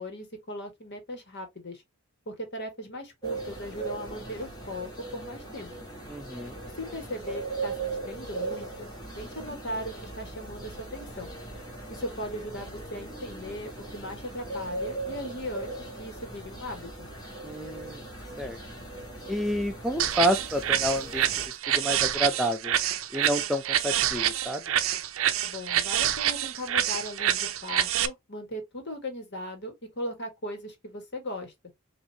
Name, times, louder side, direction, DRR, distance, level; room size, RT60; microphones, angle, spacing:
voice 1, 0.0-1.8 2.3-5.7 6.8-8.9 9.2-11.3 11.9-17.1 25.4-31.5, left 1 dB, 55° left, 1.6 m, -38 dB
sound 1, 3.2-21.5, right 3 dB, 20° left, 1.8 m, -39 dB
voice 2, 6.1-6.6 17.4-18.1 18.4-18.6 19.3-21.3 21.7-22.7 23.1-24.6, equal, ahead, 0.4 m, -29 dB
sound 2, 20.0-28.1, right 11 dB, 65° right, 0.5 m, -27 dB
5.9 x 2.7 x 2.8 m
head